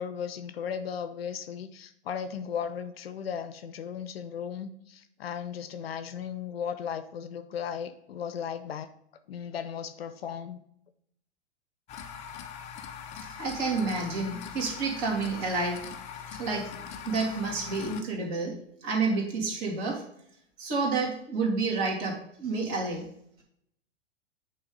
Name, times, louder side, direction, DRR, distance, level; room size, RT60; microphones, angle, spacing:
voice 1, 0.0-8.9 9.3-10.6, left 7 dB, 55° left, 11 dB, 0.7 m, -36 dB
sound 1, 11.9-18.0, left 8 dB, 20° left, 0.5 m, -41 dB
voice 2, 13.2-15.9 16.3-16.7 17.1-20.0 20.6-23.1, right 3 dB, 35° right, -1 dB, 2.5 m, -30 dB
8.7 x 3.4 x 5.1 m, 0.72 s
figure-of-eight pair, 105°, 35 cm